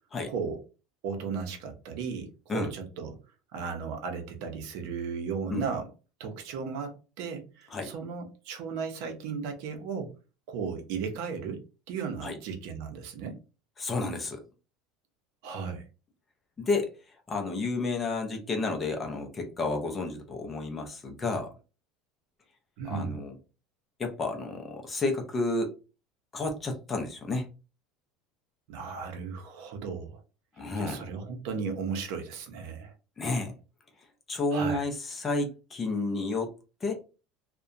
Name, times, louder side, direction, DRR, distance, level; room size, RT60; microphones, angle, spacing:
voice 1, 0.3-0.6 1.0-3.2 3.5-5.9 6.2-10.1 10.5-11.6 11.9-13.4 15.4-15.8 22.8-23.2 28.7-30.2 30.8-32.9 34.5-34.9, right 5 dB, 60° right, 4 dB, 0.6 m, -35 dB
voice 2, 13.8-14.4 16.6-17.0 17.3-21.5 22.8-23.3 24.0-25.7 26.3-27.5 30.6-31.1 33.2-33.5 34.3-36.5 36.8-36.9, left 3 dB, 15° left, 3 dB, 0.5 m, -31 dB
2.7 x 2.1 x 2.4 m, 0.32 s
cardioid pair, 170°, 0 cm